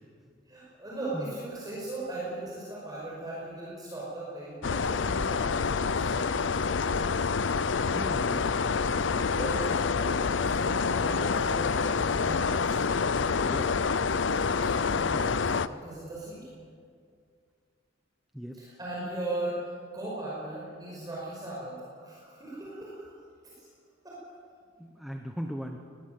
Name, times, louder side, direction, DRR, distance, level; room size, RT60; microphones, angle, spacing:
voice 1, 0.5-6.1 9.3-13.7 14.6-16.4 18.6-23.1 23.6-23.7 24.0-24.2, right 2 dB, 20° right, -6 dB, 5.4 m, -38 dB
sound 1, 4.6-15.7, left 5 dB, 75° left, 0.6 m, -27 dB
voice 2, 7.9-8.6 13.4-13.7 18.3-18.6 24.8-25.8, equal, ahead, 3 dB, 1.1 m, -37 dB
20.5 x 20.5 x 7.9 m, 2.2 s
head